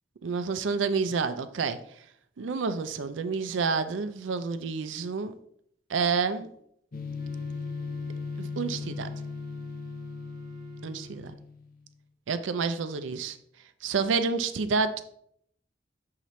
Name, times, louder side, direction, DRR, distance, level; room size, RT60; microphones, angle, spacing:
voice 1, 0.2-2.0 2.4-5.3 5.9-6.5 8.4-9.1 10.8-11.3 12.3-13.4 13.8-15.0, right 5 dB, 75° right, 11 dB, 0.4 m, -29 dB
sound 1, 6.9-11.8, left 5 dB, 45° left, 0.6 m, -37 dB
Wind instrument woodwind instrument, 7.2-11.5, right 5 dB, 25° right, 1.2 m, -50 dB
6.7 x 5.6 x 3.1 m, 0.69 s
head